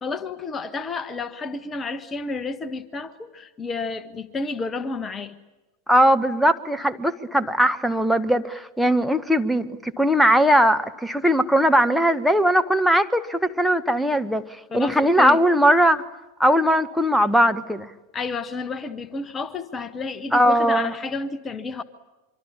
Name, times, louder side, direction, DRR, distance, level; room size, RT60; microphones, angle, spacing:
voice 1, 0.0-5.4 14.7-15.4 18.1-21.8, left 4 dB, 20° left, 1.5 m, -31 dB
voice 2, 5.9-16.0 16.4-17.9 20.3-20.9, equal, ahead, 1.3 m, -19 dB
25.5 x 25.0 x 8.7 m
figure-of-eight pair, 90°, 0 cm